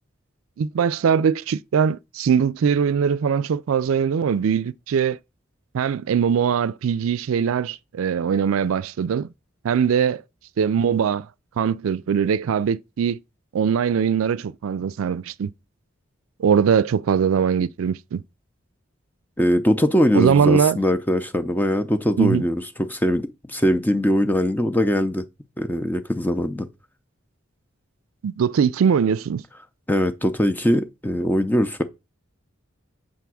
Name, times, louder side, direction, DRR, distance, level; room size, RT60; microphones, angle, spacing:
voice 1, 0.6-5.2 5.7-9.3 9.6-10.2 10.6-11.3 11.6-13.2 13.5-15.5 16.4-18.2 20.1-20.8 22.2-22.4 28.2-29.4, right 7 dB, 85° right, 0.4 m, -21 dB
voice 2, 19.4-22.6 22.9-25.2 25.6-26.7 29.9-31.8, equal, 10° left, 0.5 m, -21 dB
7.5 x 3.4 x 6.1 m
head